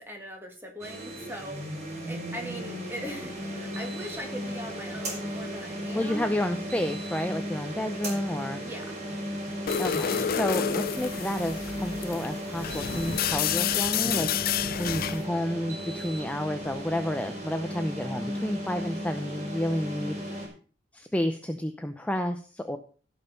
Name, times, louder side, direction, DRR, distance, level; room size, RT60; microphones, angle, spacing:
voice 1, 0.0-6.3 8.6-8.9, equal, 10° right, 2 dB, 2.3 m, -40 dB
sound 1, 0.8-20.5, equal, 40° right, 4.6 m, -36 dB
voice 2, 5.9-8.6 9.8-20.4 20.9-22.8, left 1 dB, 5° left, 6 dB, 0.7 m, -31 dB
sound 2, 9.7-15.3, left 8 dB, 50° left, 0.5 m, -29 dB
16.0 x 5.6 x 5.3 m, 0.40 s
head